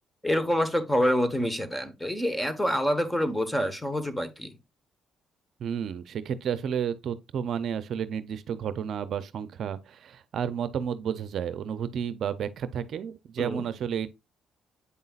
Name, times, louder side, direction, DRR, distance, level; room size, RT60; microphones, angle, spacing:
voice 1, 0.2-4.5 13.4-13.6, equal, 10° left, 1.1 m, -27 dB
voice 2, 5.6-14.1, right 8 dB, 65° right, 0.6 m, -31 dB
8.3 x 5.4 x 2.4 m
cardioid pair, 90°, 0 cm